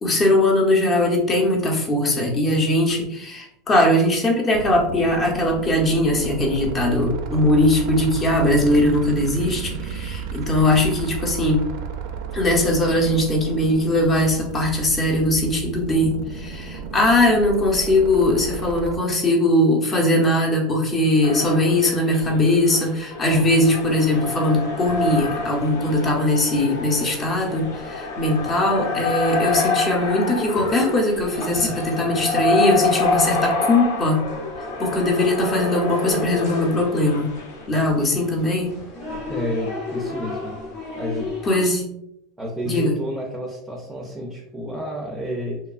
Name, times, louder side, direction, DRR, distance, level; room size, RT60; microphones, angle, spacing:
voice 1, 0.0-11.7 12.3-34.2 34.8-37.3 37.7-38.8 41.4-41.9 42.6-43.0, left 1 dB, 25° left, 0 dB, 0.8 m, -20 dB
sound 1, 4.5-19.0, right 6 dB, 65° right, 0.4 m, -33 dB
sound 2, 21.2-37.6, left 3 dB, 85° left, 0.4 m, -27 dB
sound 3, 23.3-41.6, left 2 dB, 65° left, 1.0 m, -37 dB
voice 2, 39.3-40.5 41.0-41.3 42.4-45.6, equal, 10° right, -1 dB, 0.5 m, -30 dB
2.9 x 2.2 x 2.4 m, 0.79 s
supercardioid pair, 120°, 0 cm